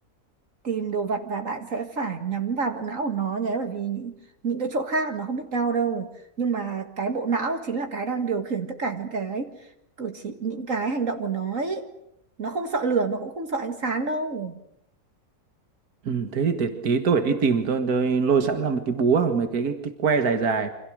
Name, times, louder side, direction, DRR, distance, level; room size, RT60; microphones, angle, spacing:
voice 1, 0.6-4.2 4.4-6.1 6.4-9.5 10.0-11.9 12.4-14.6, right 4 dB, 55° right, 5 dB, 2.1 m, -28 dB
voice 2, 16.1-20.7, right 5 dB, 70° right, 7 dB, 2.2 m, -23 dB
28.5 x 26.0 x 6.5 m, 0.74 s
omnidirectional pair, 1.7 m